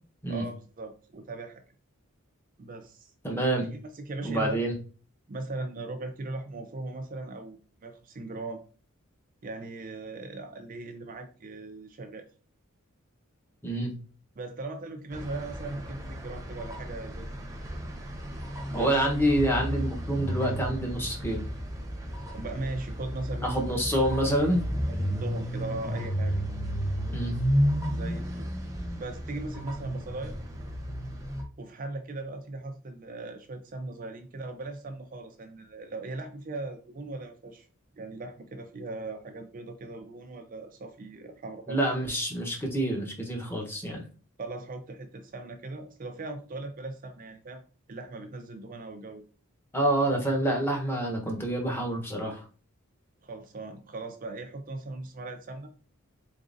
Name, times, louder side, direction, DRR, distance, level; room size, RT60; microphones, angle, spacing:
voice 1, 0.3-1.6 2.6-3.1 3.6-4.6 5.3-8.6 9.4-12.3 14.4-17.3 18.7-19.1 22.3-23.8 24.1-24.3 24.8-26.3 27.8-28.5 29.0-30.4 31.6-37.7 38.0-41.8 44.4-47.6 47.9-49.2 53.2-55.7, right 2 dB, 40° right, 6 dB, 0.4 m, -39 dB
voice 2, 3.2-3.7 4.2-4.7 13.6-13.9 18.7-21.4 23.4-24.6 27.1-27.4 41.7-44.0 49.7-52.4, right 1 dB, 10° left, 1 dB, 1.0 m, -27 dB
sound 1, 15.1-31.4, equal, 15° right, 0.8 m, -32 dB
4.0 x 3.7 x 2.6 m, 0.38 s
head